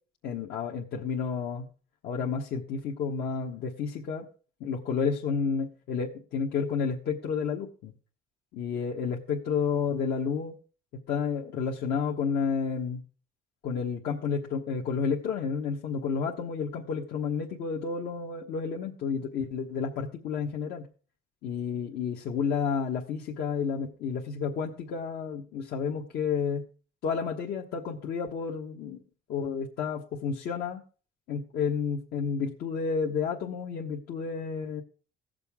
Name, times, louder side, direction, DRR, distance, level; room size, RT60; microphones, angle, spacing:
voice 1, 0.2-1.7 2.0-4.3 4.6-7.9 8.5-10.6 11.1-13.0 13.6-20.9 21.4-26.7 27.0-29.0 29.3-30.8 31.3-34.8, left 6 dB, 70° left, -1 dB, 1.3 m, -31 dB
16.5 x 6.8 x 3.6 m, 0.38 s
cardioid pair, 110°, 17 cm